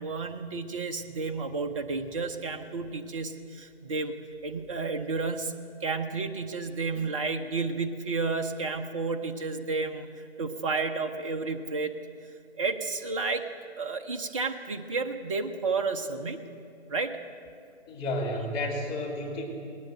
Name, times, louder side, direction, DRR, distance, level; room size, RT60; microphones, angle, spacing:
voice 1, 0.0-4.1 4.4-5.5 5.8-11.9 12.6-13.5 13.8-16.5 16.9-17.2, right 4 dB, 30° right, 6 dB, 0.8 m, -31 dB
voice 2, 17.9-19.4, left 1 dB, 15° left, -5 dB, 3.3 m, -31 dB
19.5 x 19.0 x 7.8 m, 2.5 s
figure-of-eight pair, 140°, 33 cm